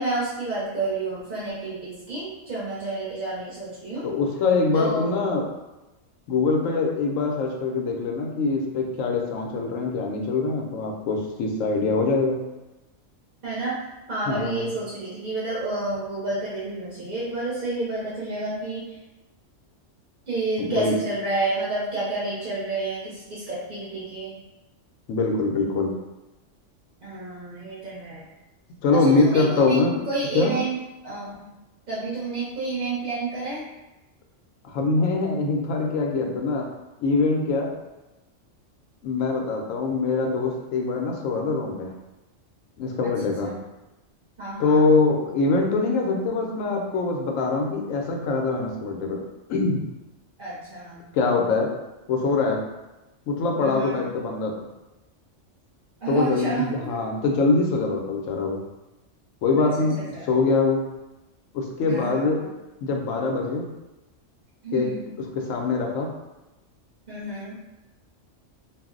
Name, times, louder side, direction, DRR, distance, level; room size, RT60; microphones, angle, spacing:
voice 1, 0.0-4.0 4.7-5.1 13.4-13.8 14.1-19.0 20.3-24.3 27.0-28.3 28.9-29.8 30.1-30.8 31.0-31.3 31.9-33.6 43.4-43.6 44.4-44.9 50.4-51.1 53.6-54.1 56.0-57.0 59.6-59.7 60.1-60.3 61.8-62.5 64.6-65.1 67.1-67.6, right 2 dB, 45° right, -8 dB, 0.8 m, -30 dB
voice 2, 4.0-5.5 6.3-12.4 14.3-14.7 20.6-20.9 25.1-25.9 28.8-30.0 30.3-30.5 34.6-36.7 37.0-37.7 39.0-41.9 42.8-43.5 44.6-49.2 49.5-49.8 51.1-51.7 52.1-52.6 53.3-54.5 56.1-58.6 59.4-60.0 60.3-60.8 61.5-62.4 62.8-63.7 64.7-64.9 65.3-66.1, left 3 dB, 90° left, 1 dB, 1.0 m, -23 dB
2.5 x 2.0 x 3.6 m, 1.0 s
omnidirectional pair, 1.3 m